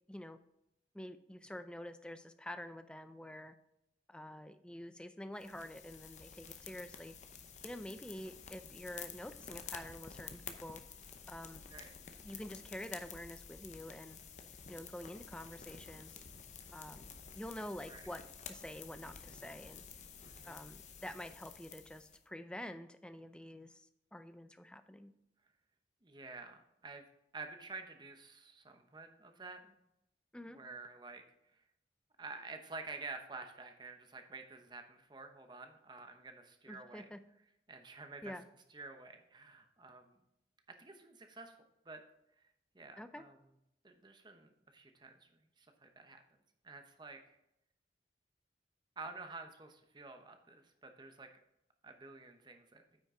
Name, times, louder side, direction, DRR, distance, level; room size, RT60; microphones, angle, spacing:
voice 1, 0.1-0.4 0.9-3.5 4.1-7.1 7.6-10.8 11.3-11.6 12.2-14.2 14.7-16.2 16.7-17.1 17.3-19.8 20.4-25.1 30.3-30.6 36.7-37.2 38.2-38.4 43.0-43.2, left 1 dB, 5° left, 10 dB, 0.4 m, -47 dB
sound 1, 5.4-22.2, left 7 dB, 40° left, 0.7 m, -51 dB
voice 2, 20.2-20.7 26.0-27.0 27.3-29.8 30.5-31.2 32.2-37.0 37.7-38.3 38.7-40.2 40.8-41.6 41.8-42.0 42.4-42.5 42.7-43.4 43.8-46.2 46.6-47.4 49.0-51.3 51.8-52.8, right 3 dB, 25° right, 6 dB, 0.9 m, -50 dB
9.0 x 5.9 x 3.7 m, 0.84 s
head